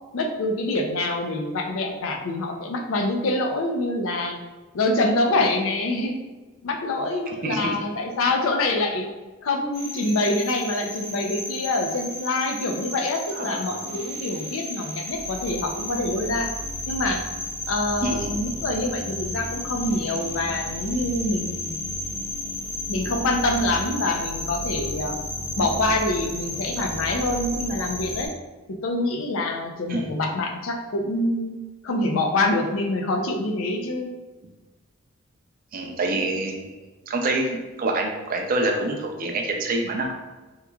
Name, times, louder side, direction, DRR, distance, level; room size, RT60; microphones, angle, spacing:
voice 1, 0.1-4.4 4.7-6.2 6.6-9.1 9.4-16.5 16.9-17.2 17.7-21.8 22.9-25.2 25.6-28.3 28.8-31.5 31.8-34.1, left 2 dB, 70° left, 3 dB, 0.4 m, -25 dB
voice 2, 7.4-7.8 13.4-14.0 18.0-18.4 29.9-30.1 35.7-36.7 37.1-40.1, right 2 dB, 40° right, 2 dB, 0.4 m, -26 dB
sound 1, 9.7-28.3, left 1 dB, 15° left, 0.8 m, -33 dB
3.5 x 3.0 x 2.2 m, 1.2 s
head